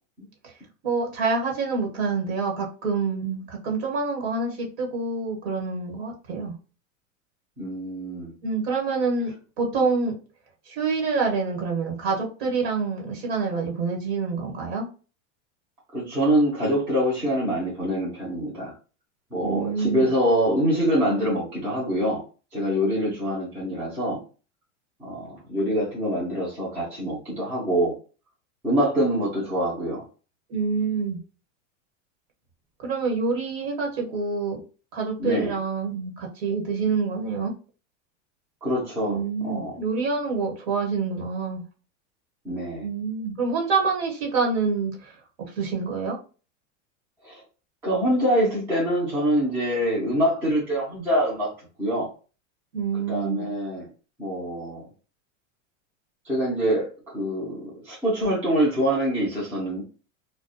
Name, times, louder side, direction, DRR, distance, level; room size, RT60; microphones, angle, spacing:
voice 1, 0.8-6.5 8.4-10.1 10.7-14.9 19.4-20.1 30.5-31.2 32.8-34.6 34.9-37.5 39.1-41.6 42.8-45.1 45.6-46.2 52.7-53.5, right 4 dB, 55° right, 1 dB, 1.1 m, -27 dB
voice 2, 7.6-8.3 15.9-18.7 19.3-22.2 22.5-24.2 25.0-27.9 28.6-30.0 35.2-35.5 38.6-39.8 42.4-42.9 47.2-47.4 47.8-51.5 51.8-52.1 53.1-53.9 54.2-54.9 56.3-59.8, equal, 5° right, -7 dB, 0.4 m, -25 dB
2.3 x 2.1 x 2.6 m, 0.35 s
supercardioid pair, 165°, 38 cm